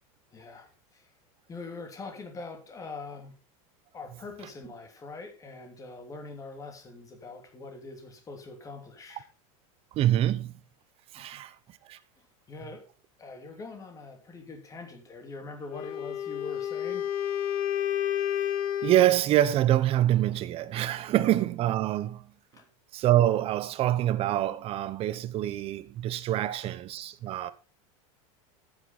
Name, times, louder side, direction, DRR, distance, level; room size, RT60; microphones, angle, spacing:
voice 1, 0.3-1.1 1.5-3.4 3.9-9.3 11.1-11.4 12.5-12.8 13.2-17.1 22.5-22.7, left 3 dB, 20° left, 2.8 m, -43 dB
voice 2, 10.0-10.5 11.1-11.5 11.9-12.0 18.8-22.2 22.9-27.5, right 13 dB, 35° right, 1.0 m, -25 dB
Wind instrument woodwind instrument, 15.7-19.2, left 10 dB, 85° left, 1.9 m, -30 dB
11.5 x 9.2 x 4.2 m
supercardioid pair, 145°, 17 cm